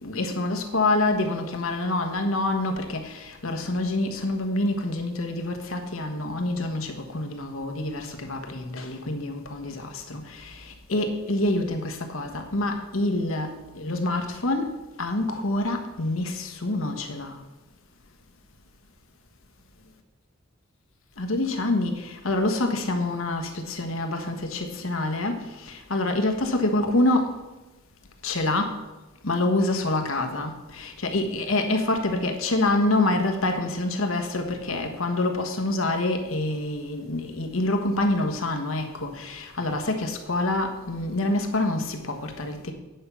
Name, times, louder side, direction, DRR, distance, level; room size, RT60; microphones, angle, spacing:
voice 1, 0.0-17.4 21.2-27.4 28.2-28.8 29.2-42.7, left 2 dB, 80° left, 1.4 m, -26 dB
9.6 x 5.5 x 7.0 m
head